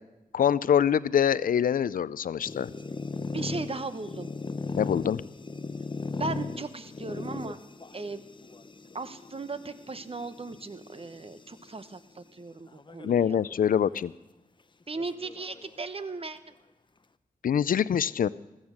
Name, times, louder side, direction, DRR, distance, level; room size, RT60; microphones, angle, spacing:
voice 1, 0.3-2.7 4.8-5.2 13.0-14.1 17.4-18.3, left 8 dB, 70° left, 18 dB, 0.5 m, -24 dB
sound 1, 2.4-11.9 12.7-13.2 13.6-13.7 14.0-14.1 15.0-16.1, left 3 dB, 35° left, 0.7 m, -38 dB
voice 2, 3.3-4.3 6.2-7.6 7.9-8.2 8.9-13.4 14.9-16.5, right 3 dB, 40° right, 11 dB, 1.0 m, -37 dB
15.5 x 13.0 x 6.3 m, 1.0 s
cardioid pair, 45°, 15 cm